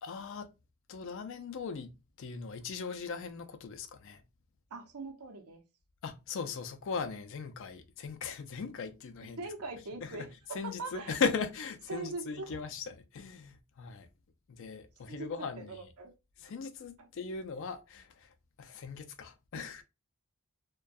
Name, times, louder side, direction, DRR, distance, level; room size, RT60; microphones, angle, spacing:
voice 1, 0.0-0.5 0.9-4.2 6.0-9.4 10.0-14.1 14.5-15.9 16.4-19.8, left 5 dB, 60° left, 0.4 m, -38 dB
voice 2, 4.7-5.6 9.4-11.2 11.9-12.6 15.1-15.3 15.6-16.1 17.0-17.1, right 3 dB, 80° right, 0.6 m, -42 dB
2.2 x 2.2 x 2.5 m
head